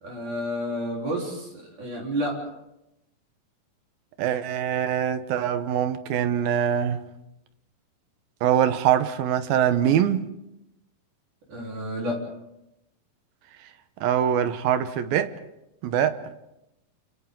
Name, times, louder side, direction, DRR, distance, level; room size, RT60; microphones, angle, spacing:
voice 1, 0.0-2.5 11.5-12.2, equal, 60° right, 5.5 m, -30 dB
voice 2, 4.2-7.1 8.4-10.3 14.0-15.3 15.8-16.2, right 9 dB, 80° right, 3.0 m, -23 dB
29.5 x 28.0 x 3.9 m
omnidirectional pair, 4.1 m